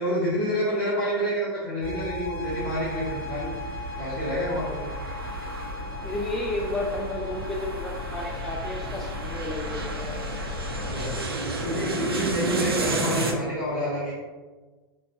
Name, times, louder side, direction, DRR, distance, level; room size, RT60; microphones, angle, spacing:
voice 1, 0.0-3.5 4.0-4.9 10.9-14.1, equal, 35° left, -12 dB, 1.3 m, -28 dB
sound 1, 1.8-11.2, left 3 dB, 25° right, 1.2 m, -36 dB
sound 2, 2.4-13.3, right 3 dB, 75° right, 0.5 m, -33 dB
voice 2, 4.9-5.3 6.0-10.2, left 1 dB, 5° left, -1 dB, 0.3 m, -32 dB
4.4 x 2.5 x 2.3 m, 1.3 s
figure-of-eight pair, 90°, 13 cm